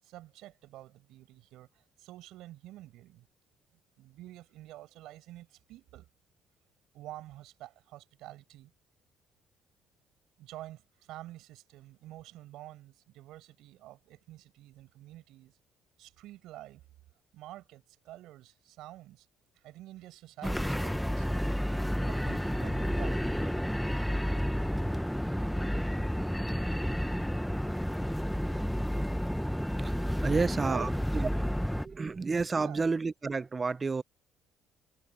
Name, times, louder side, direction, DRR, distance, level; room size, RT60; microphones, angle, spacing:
voice 1, 0.0-3.3 4.0-6.1 6.9-8.7 10.4-15.6 16.0-16.8 17.3-19.3 19.5-21.3 22.0-23.5 30.3-30.9 32.5-32.9, right 15 dB, 80° right, 7.6 m, -48 dB
sound 1, 20.4-31.9, equal, ahead, 1.0 m, -31 dB
voice 2, 30.2-31.3 31.8-34.0, right 4 dB, 30° right, 0.6 m, -30 dB
supercardioid pair, 75°, 0 cm